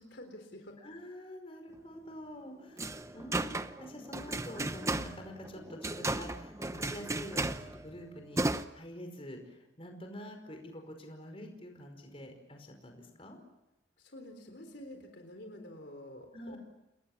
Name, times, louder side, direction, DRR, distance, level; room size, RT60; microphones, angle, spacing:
voice 1, 0.0-0.7 14.0-16.6, left 1 dB, 60° left, 5 dB, 3.9 m, -48 dB
voice 2, 0.8-13.4 16.3-16.6, equal, 30° left, 4 dB, 5.0 m, -47 dB
sound 1, 2.7-8.6, right 2 dB, 15° right, 0.8 m, -35 dB
30.0 x 20.5 x 7.3 m, 0.94 s
head